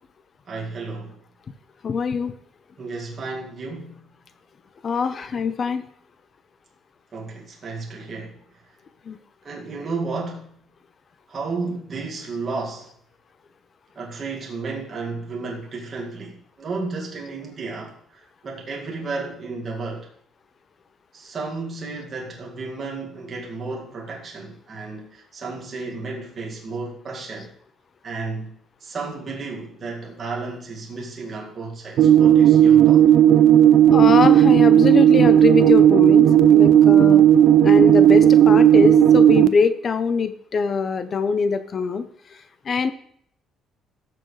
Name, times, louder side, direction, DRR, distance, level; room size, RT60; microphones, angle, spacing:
voice 1, 0.5-1.2 2.8-4.0 7.1-8.7 9.4-10.6 11.3-12.9 14.0-20.1 21.1-27.5 28.0-33.1, right 3 dB, 35° right, 2.1 m, -33 dB
voice 2, 1.8-2.3 4.8-5.8 9.1-9.2 33.9-37.2 37.6-42.1 42.7-42.9, left 5 dB, 35° left, 0.7 m, -22 dB
sound 1, 32.0-39.5, right 10 dB, 60° right, 0.5 m, -13 dB
18.0 x 6.9 x 3.2 m
cardioid pair, 145°, 0 cm